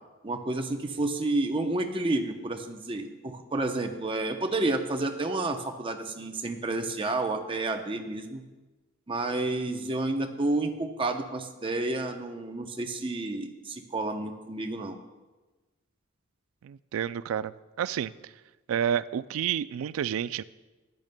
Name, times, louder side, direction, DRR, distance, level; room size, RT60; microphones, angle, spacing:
voice 1, 0.2-8.4 9.1-15.0, right 2 dB, 25° right, 5 dB, 0.7 m, -30 dB
voice 2, 16.6-18.1 18.7-20.4, right 9 dB, 85° right, 16 dB, 0.3 m, -30 dB
13.5 x 10.5 x 2.2 m, 1.2 s
head